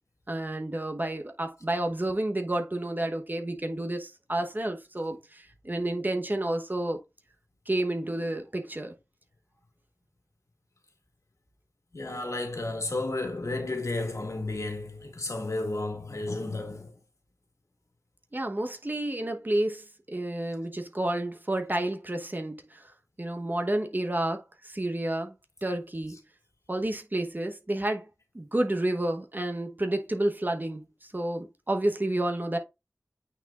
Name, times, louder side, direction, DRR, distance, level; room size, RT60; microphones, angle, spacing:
voice 1, 0.3-7.0 7.7-8.9 18.3-22.8 23.2-25.3 25.6-26.2 26.7-28.1 28.3-32.6, right 1 dB, 30° right, 1.0 m, -30 dB
voice 2, 11.9-17.0, left 2 dB, 65° left, 1.9 m, -32 dB
8.9 x 4.4 x 2.4 m
wide cardioid pair, 55°, 6 cm